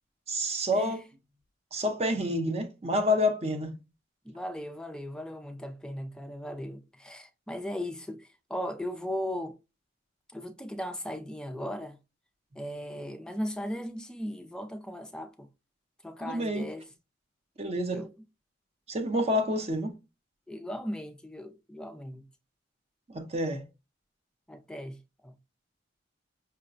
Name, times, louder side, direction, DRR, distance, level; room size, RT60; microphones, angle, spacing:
voice 1, 0.3-1.0 1.7-3.7 16.2-16.7 17.6-18.0 18.9-19.9 23.1-23.6, left 1 dB, 35° right, 0.7 m, -28 dB
voice 2, 4.2-9.6 10.3-12.0 12.6-15.5 16.0-16.9 17.9-18.1 20.5-22.3 24.5-25.4, equal, 5° left, 0.3 m, -37 dB
5.6 x 2.1 x 2.5 m
head